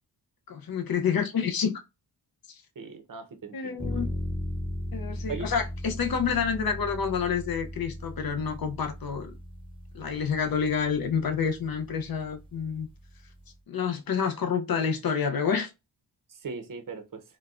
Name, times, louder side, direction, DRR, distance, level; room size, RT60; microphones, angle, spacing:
voice 1, 0.5-1.7 2.5-2.6 3.5-4.0 4.9-9.3 9.9-12.9 13.7-15.7, left 6 dB, 60° left, 0.5 m, -28 dB
voice 2, 2.8-3.8 5.3-5.5 16.4-17.2, right 4 dB, 50° right, 0.6 m, -38 dB
sound 1, 3.8-13.5, equal, 10° right, 0.7 m, -38 dB
3.8 x 2.1 x 2.3 m
wide cardioid pair, 120°, 41 cm